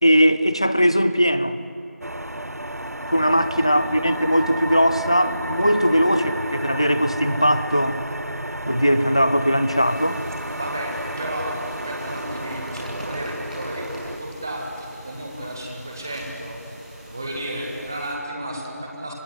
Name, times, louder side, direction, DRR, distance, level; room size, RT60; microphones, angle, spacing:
voice 1, 0.0-1.6 3.1-8.0 8.7-10.2, equal, 20° left, 0.6 m, -19 dB
sound 1, 2.0-14.2, right 1 dB, 75° right, 1.5 m, -32 dB
sound 2, 9.7-18.1, equal, 30° right, 6.7 m, -42 dB
voice 2, 10.6-16.8 17.1-19.1, right 1 dB, 10° right, 1.8 m, -33 dB
26.0 x 18.0 x 10.0 m
figure-of-eight pair, 175°, 9 cm